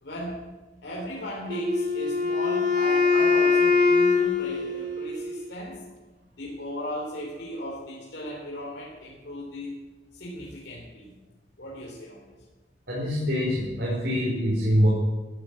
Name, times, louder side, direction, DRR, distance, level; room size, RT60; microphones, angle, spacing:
voice 1, 0.0-0.4 0.8-5.8 6.3-9.8 10.1-11.1 11.6-12.3, equal, 70° left, -4 dB, 3.3 m, -36 dB
Wind instrument woodwind instrument, 1.5-5.5, left 4 dB, 45° right, 3.2 m, -23 dB
voice 2, 12.9-14.9, equal, 65° right, -4 dB, 4.4 m, -24 dB
14.5 x 9.9 x 8.7 m, 1.2 s
head